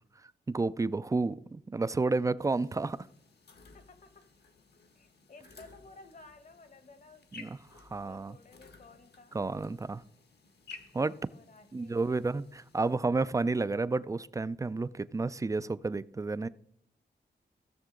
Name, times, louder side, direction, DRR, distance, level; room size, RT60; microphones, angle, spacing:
voice 1, 0.5-3.0 7.4-8.4 9.3-10.0 10.9-11.2 11.7-16.5, right 3 dB, 20° right, 17 dB, 0.3 m, -31 dB
sound 1, 2.4-13.0, left 4 dB, 65° left, 1.1 m, -56 dB
voice 2, 2.6-3.0 3.7-4.3 5.0-7.5 8.0-9.4 11.3-12.2 12.8-13.0, left 3 dB, 45° left, 11 dB, 1.1 m, -55 dB
16.0 x 6.7 x 3.8 m, 0.72 s
wide cardioid pair, 90°, 19 cm